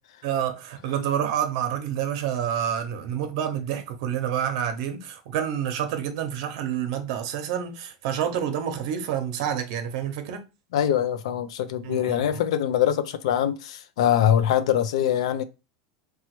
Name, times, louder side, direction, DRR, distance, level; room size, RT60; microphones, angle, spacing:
voice 1, 0.2-10.4 11.8-12.4, right 9 dB, 65° right, 0.7 m, -28 dB
voice 2, 10.7-15.4, left 10 dB, 85° left, 0.4 m, -23 dB
3.0 x 2.2 x 2.9 m
supercardioid pair, 145°, 3 cm